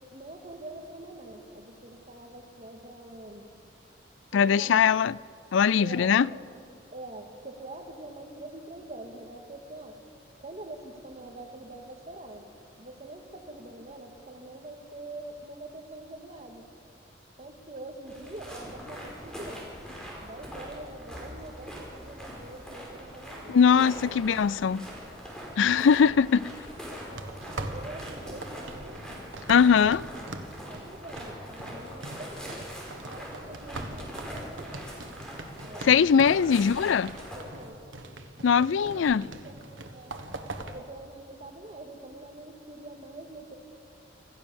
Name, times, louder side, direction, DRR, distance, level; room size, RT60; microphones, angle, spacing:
voice 1, 0.1-3.5 4.3-4.8 5.8-6.4 6.9-10.0 10.4-12.4 12.8-16.6 17.4-19.7 20.2-23.6 24.0-24.2 24.8-24.9 25.7-25.9 26.9-28.9 29.5-30.1 30.7-32.7 33.0-34.8 35.6-36.0 36.3-36.5 37.3-37.8 38.6-39.0 39.4-40.2 40.7-43.6, right 2 dB, 35° right, 2.1 m, -44 dB
voice 2, 4.3-5.2 5.5-6.3 23.5-24.8 25.6-26.5 29.5-30.0 35.8-37.1 38.4-39.3, left 6 dB, 80° left, 0.4 m, -21 dB
sound 1, 18.0-37.4, equal, 5° left, 5.2 m, -42 dB
sound 2, 27.1-40.8, right 2 dB, 85° right, 1.5 m, -42 dB
26.0 x 14.0 x 7.1 m
head